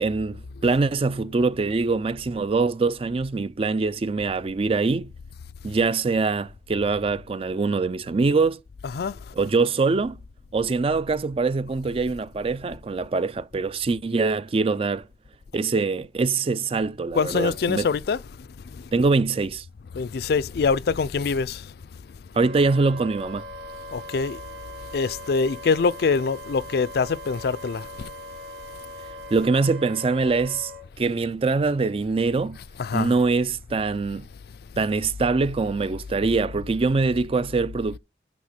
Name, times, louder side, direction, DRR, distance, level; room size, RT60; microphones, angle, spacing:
voice 1, 0.0-5.1 5.6-8.6 9.3-10.2 10.5-15.1 15.5-17.9 18.9-19.6 22.3-23.4 29.3-30.7 31.0-32.6 32.9-34.3 34.8-38.0, right 4 dB, 30° right, 0.4 m, -23 dB
voice 2, 8.8-9.2 17.1-18.2 19.9-21.7 23.9-24.4 24.9-28.1 32.8-33.2, left 5 dB, 60° left, 0.4 m, -24 dB
Wind instrument woodwind instrument, 22.3-30.8, equal, 85° right, 3.0 m, -40 dB
6.1 x 5.8 x 5.8 m
head